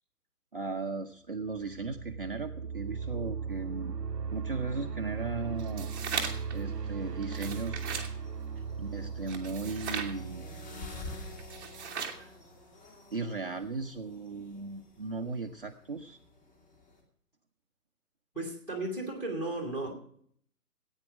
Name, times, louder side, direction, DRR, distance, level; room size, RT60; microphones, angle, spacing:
voice 1, 0.5-3.9 4.3-5.9 6.5-7.8 8.8-10.4 11.8-12.3 13.1-16.2, right 4 dB, 35° right, 0.6 m, -37 dB
sound 1, 1.5-12.2, right 5 dB, 90° right, 0.8 m, -38 dB
sound 2, 5.6-6.5 7.2-8.1 9.3-10.1 11.4-12.2, right 6 dB, 15° right, 1.0 m, -37 dB
sound 3, 7.0-17.0, left 3 dB, 30° left, 2.8 m, -50 dB
voice 2, 18.3-19.9, right 2 dB, 5° left, 1.4 m, -35 dB
14.5 x 8.9 x 6.1 m
figure-of-eight pair, 140°, 48 cm